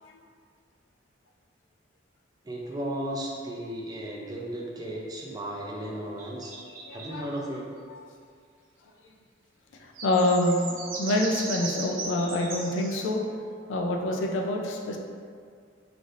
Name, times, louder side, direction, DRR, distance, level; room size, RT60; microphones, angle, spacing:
voice 1, 2.4-6.5 6.9-7.7, right 1 dB, 20° right, -2 dB, 0.3 m, -35 dB
sound 1, 6.2-7.2 10.0-13.1, right 3 dB, 85° right, 0.5 m, -37 dB
voice 2, 6.9-7.2 10.0-13.2 13.7-15.0, left 1 dB, 75° left, 0 dB, 0.4 m, -26 dB
3.3 x 2.6 x 2.4 m, 2.2 s
head